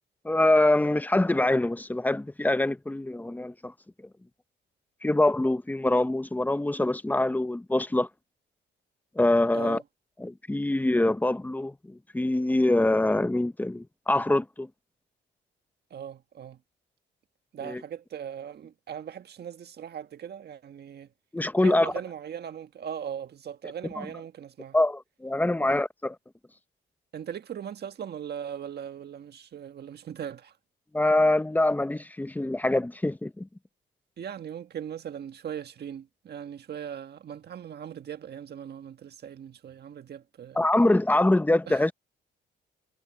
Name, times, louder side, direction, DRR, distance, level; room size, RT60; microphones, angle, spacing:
voice 1, 0.2-3.7 5.0-8.1 9.2-9.8 10.2-14.7 17.6-17.8 21.3-21.9 24.0-24.1 24.7-26.2 30.9-33.5 40.6-41.9, left 1 dB, 10° left, 0.8 m, -24 dB
voice 2, 15.9-16.6 17.5-21.1 21.6-24.8 25.6-25.7 27.1-30.5 34.2-40.6 41.7-41.8, right 8 dB, 55° right, 1.6 m, -39 dB
cardioid pair, 90°, 20 cm